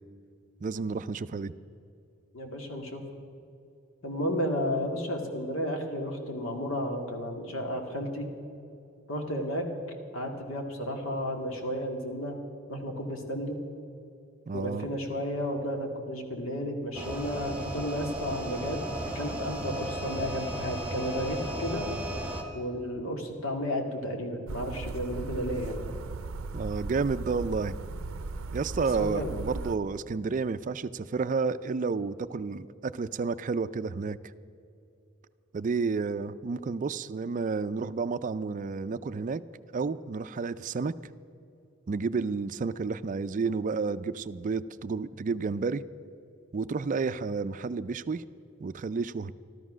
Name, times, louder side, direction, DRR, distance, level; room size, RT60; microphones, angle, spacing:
voice 1, 0.6-1.5 14.5-14.9 26.5-27.8 28.5-34.2 35.5-39.4 39.7-40.9 41.9-45.8 46.5-48.2 48.6-49.3, right 4 dB, 40° right, 14 dB, 0.4 m, -31 dB
voice 2, 2.3-3.0 4.0-8.3 9.1-9.7 10.1-12.4 12.7-13.6 14.5-18.8 19.1-21.9 22.5-25.8 28.8-29.3, equal, 80° left, 3 dB, 2.1 m, -33 dB
sound 1, 16.9-22.4, right 1 dB, 5° right, 2.0 m, -35 dB
sound 2, 24.5-29.8, right 3 dB, 90° right, 0.5 m, -37 dB
13.5 x 13.5 x 6.2 m, 2.7 s
head